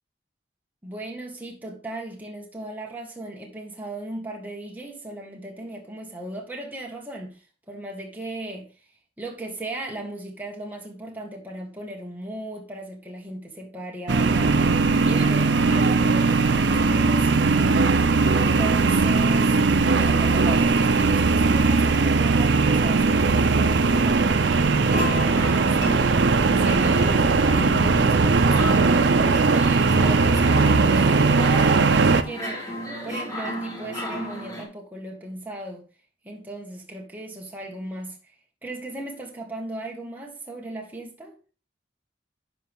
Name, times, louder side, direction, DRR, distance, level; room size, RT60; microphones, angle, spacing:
voice 1, 0.8-8.7 9.2-24.4 24.7-32.8 33.0-35.9 36.2-38.3 38.6-41.3, right 1 dB, 10° right, 1.8 m, -37 dB
sound 1, 14.1-32.2, right 4 dB, 65° right, 0.6 m, -19 dB
sound 2, 24.9-34.6, left 1 dB, 20° left, 2.9 m, -33 dB
11.5 x 4.9 x 3.7 m
head